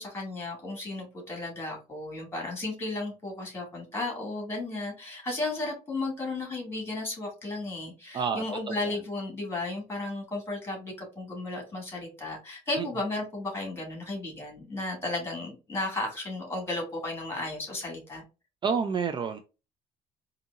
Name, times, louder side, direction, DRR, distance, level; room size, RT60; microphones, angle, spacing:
voice 1, 0.0-18.2, left 2 dB, 15° left, 0 dB, 2.3 m, -34 dB
voice 2, 8.1-8.8 12.8-12.9 18.6-19.4, right 6 dB, 30° right, 8 dB, 0.4 m, -29 dB
4.8 x 2.7 x 2.6 m, 0.30 s
cardioid pair, 135°, 15 cm